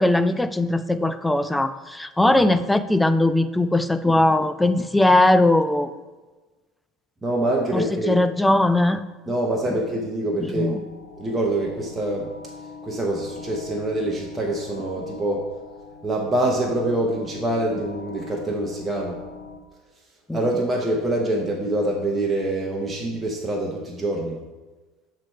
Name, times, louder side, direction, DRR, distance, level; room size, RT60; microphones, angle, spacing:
voice 1, 0.0-5.9 7.7-9.1 9.7-9.8 10.4-10.8 20.3-20.5, left 1 dB, 5° left, 12 dB, 0.3 m, -20 dB
voice 2, 7.2-8.1 9.3-10.8 11.2-12.3 12.8-15.4 16.0-19.2 20.3-24.4, right 1 dB, 15° right, -2 dB, 0.9 m, -25 dB
sound 1, 10.7-19.6, left 4 dB, 70° left, 0.8 m, -41 dB
7.4 x 3.3 x 4.4 m, 1.2 s
supercardioid pair, 100°, 0 cm